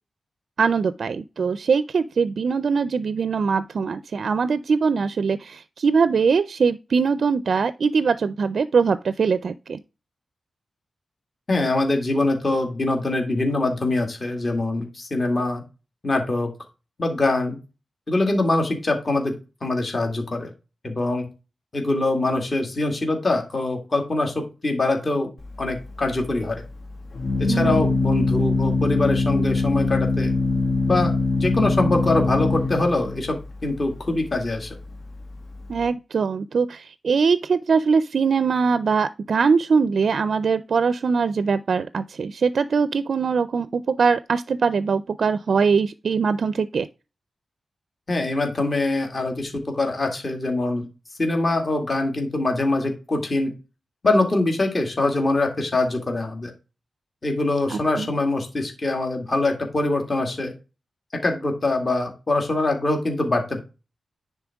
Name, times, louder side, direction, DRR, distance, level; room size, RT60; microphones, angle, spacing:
voice 1, 0.6-9.8 27.5-28.0 35.7-46.9 57.7-58.1, right 5 dB, 65° right, 0.4 m, -22 dB
voice 2, 11.5-15.6 16.0-16.5 17.0-17.6 18.1-19.3 19.6-20.5 20.8-21.3 21.7-25.3 25.6-26.6 27.4-30.3 30.9-34.7 48.1-50.8 51.2-53.5 54.0-56.5 57.2-60.5 61.2-63.6, left 2 dB, 35° left, 2.0 m, -23 dB
Organ, 25.4-35.9, left 3 dB, 65° left, 1.7 m, -24 dB
9.9 x 4.1 x 3.5 m
wide cardioid pair, 130°, 0 cm